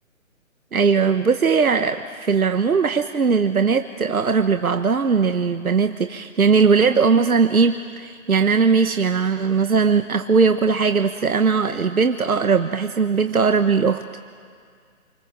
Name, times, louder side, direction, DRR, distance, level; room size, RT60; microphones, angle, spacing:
voice 1, 0.7-14.0, right 5 dB, 90° right, 8 dB, 1.3 m, -19 dB
27.5 x 25.5 x 7.5 m, 2.1 s
hypercardioid pair, 160°, 42 cm